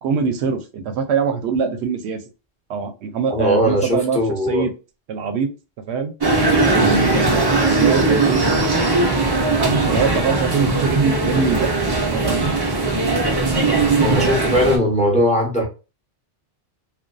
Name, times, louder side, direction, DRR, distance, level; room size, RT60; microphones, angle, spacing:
voice 1, 0.0-2.2 2.7-4.2 4.5-4.7 5.1-5.5 5.9-6.1 6.7-7.4 7.6-8.4 9.5-11.8 12.1-12.5, right 5 dB, 70° right, 0.8 m, -23 dB
voice 2, 3.3-4.7 14.0-15.6, equal, 10° left, 0.6 m, -19 dB
sound 1, 6.2-14.8, right 3 dB, 40° right, 0.3 m, -19 dB
2.5 x 2.2 x 2.2 m
omnidirectional pair, 1.2 m